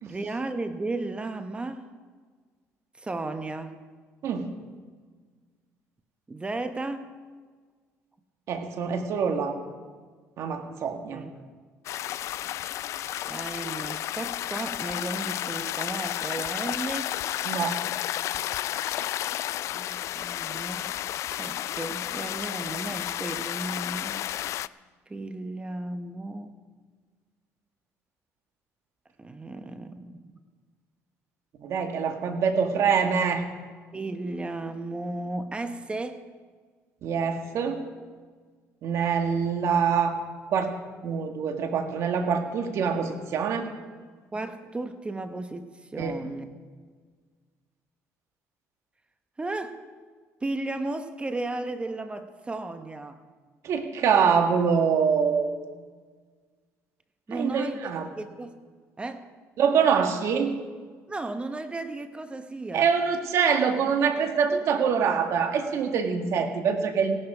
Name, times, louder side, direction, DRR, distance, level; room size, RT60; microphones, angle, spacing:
voice 1, 0.1-1.9 3.0-3.8 6.3-7.2 10.6-10.8 11.1-11.5 13.2-17.2 19.7-21.0 21.3-24.3 25.1-26.6 29.2-30.3 33.9-36.2 44.3-46.5 49.4-49.8 50.4-53.2 57.3-57.8 58.1-58.6 59.0-59.3 61.1-62.9, right 2 dB, 20° right, 9 dB, 0.9 m, -34 dB
voice 2, 8.5-9.6 10.4-11.2 17.4-17.8 31.6-33.4 37.0-37.8 38.8-40.2 40.5-40.7 41.0-43.6 46.0-46.2 53.6-55.5 57.3-58.1 59.6-60.5 62.7-67.2, right 6 dB, 65° right, 5 dB, 1.8 m, -25 dB
sound 1, 11.9-24.7, left 12 dB, 65° left, 0.3 m, -32 dB
16.5 x 12.0 x 4.9 m, 1.5 s
cardioid pair, 95°, 5 cm